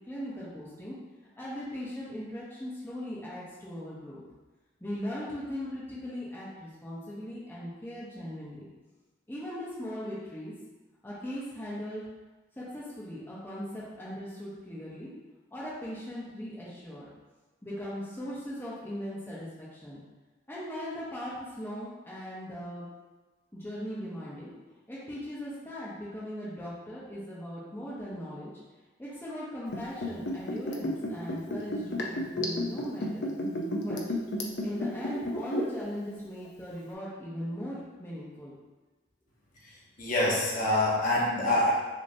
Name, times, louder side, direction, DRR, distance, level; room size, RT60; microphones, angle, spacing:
voice 1, 0.1-0.9 1.4-4.2 4.8-8.7 9.3-10.5 11.0-12.0 12.6-15.1 15.5-17.1 17.6-20.0 20.5-22.9 23.5-24.5 24.9-28.5 29.0-33.3 33.8-34.0 34.6-38.5, equal, 10° left, -8 dB, 0.7 m, -39 dB
Liquid, 29.7-35.9 36.1-36.2, left 1 dB, 70° left, 0.6 m, -32 dB
voice 2, 39.6-41.7, left 1 dB, 45° left, -5 dB, 1.0 m, -26 dB
6.4 x 2.7 x 2.7 m, 1.2 s
head